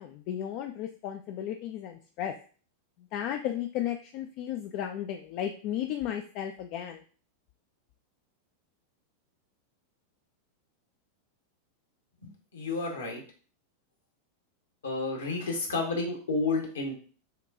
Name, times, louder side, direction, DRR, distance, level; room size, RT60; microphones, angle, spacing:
voice 1, 0.0-2.3 3.1-7.0, left 10 dB, 45° left, 5 dB, 0.4 m, -34 dB
voice 2, 12.2-13.2 14.8-17.0, left 3 dB, 65° left, 2 dB, 1.2 m, -31 dB
6.5 x 2.2 x 2.6 m, 0.40 s
figure-of-eight pair, 90°, 0 cm